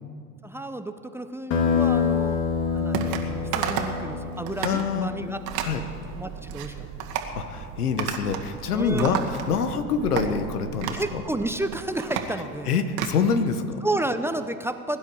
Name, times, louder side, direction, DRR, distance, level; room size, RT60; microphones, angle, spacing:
voice 1, 0.4-2.4 2.7-5.4 6.2-6.9 8.7-9.3 10.9-12.7 13.8-15.0, right 1 dB, 5° right, 9 dB, 0.7 m, -31 dB
sound 1, 1.5-6.6, left 6 dB, 50° left, 2.4 m, -27 dB
sound 2, 2.9-3.2 3.5-4.0 4.4-4.8 5.5-5.8 6.3-6.7 7.0-7.3 8.0-8.5 8.8-9.7 10.2-10.3 10.8-11.1 11.6-13.2, right 9 dB, 55° right, 1.9 m, -31 dB
voice 2, 4.6-5.1 5.6-5.8 7.4-9.2 9.5-11.2 12.7-13.8, left 5 dB, 85° left, 10 dB, 1.2 m, -25 dB
sound 3, 5.5-12.0, right 8 dB, 35° right, 1.0 m, -41 dB
22.0 x 10.5 x 4.8 m, 2.3 s
hypercardioid pair, 85°, 44 cm